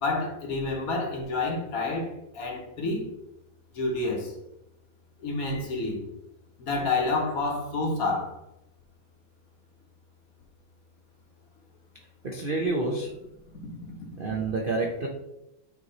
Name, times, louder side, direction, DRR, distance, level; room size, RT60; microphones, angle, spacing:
voice 1, 0.0-3.1 3.8-4.3 5.2-6.0 6.7-8.3, left 3 dB, 50° left, 0 dB, 1.4 m, -28 dB
voice 2, 12.2-13.1 14.2-15.1, right 3 dB, 60° right, 0 dB, 0.5 m, -28 dB
8.5 x 3.2 x 4.0 m, 0.87 s
omnidirectional pair, 2.1 m